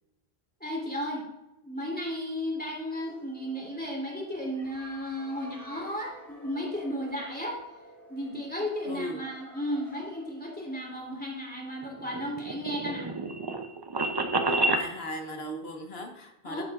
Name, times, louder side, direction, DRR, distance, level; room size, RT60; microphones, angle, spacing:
voice 1, 0.6-1.3 1.6-7.6 8.1-13.1 16.4-16.6, equal, 10° left, -2 dB, 2.7 m, -34 dB
sound 1, 2.8-12.2, right 1 dB, 65° right, 4.1 m, -52 dB
voice 2, 8.8-9.3 14.4-16.6, equal, 70° left, 4 dB, 1.5 m, -38 dB
sound 2, 11.8-14.9, right 2 dB, 30° right, 0.5 m, -29 dB
11.0 x 10.0 x 2.4 m, 0.96 s
omnidirectional pair, 1.1 m